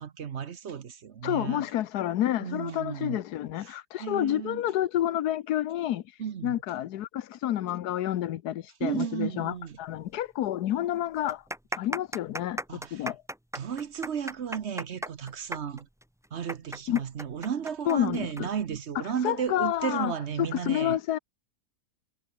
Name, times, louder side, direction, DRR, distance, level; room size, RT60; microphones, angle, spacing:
voice 1, 0.0-1.6 2.4-3.2 3.6-4.6 6.2-6.6 8.8-9.8 12.7-13.1 13.5-15.9 16.3-21.0, right 8 dB, 50° right, 1.1 m, -34 dB
voice 2, 1.2-6.0 6.4-11.4 11.8-12.6 12.9-13.2 16.9-17.0 17.9-18.5 19.2-20.1 20.4-21.2, left 12 dB, 90° left, 1.3 m, -29 dB
sound 1, 10.1-10.2 10.4-10.5 11.2-18.4 18.7-18.8 19.6-19.8, equal, 5° right, 0.6 m, -36 dB
omnidirectional pair, 1.6 m